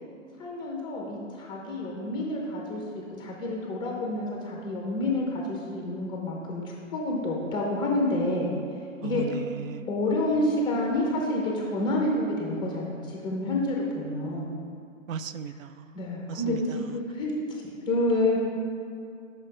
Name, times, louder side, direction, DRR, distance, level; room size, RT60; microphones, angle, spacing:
voice 1, 0.4-6.6 6.9-8.5 9.0-9.2 9.9-14.5 15.9-18.4, left 1 dB, 10° left, -2 dB, 1.0 m, -28 dB
voice 2, 9.0-9.9 15.1-15.9 16.3-16.9, right 7 dB, 75° right, 12 dB, 0.5 m, -36 dB
5.8 x 5.6 x 5.3 m, 2.5 s
hypercardioid pair, 140°, 39 cm